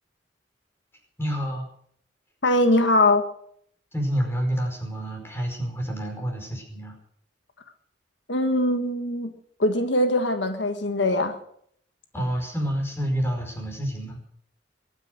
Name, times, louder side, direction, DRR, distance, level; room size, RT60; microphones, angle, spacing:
voice 1, 1.2-1.6 3.9-7.0 12.1-14.2, equal, 15° left, 2 dB, 5.0 m, -28 dB
voice 2, 2.4-3.3 8.3-9.3 9.6-11.4, left 1 dB, 80° left, 7 dB, 1.5 m, -22 dB
22.5 x 10.0 x 6.5 m, 0.66 s
head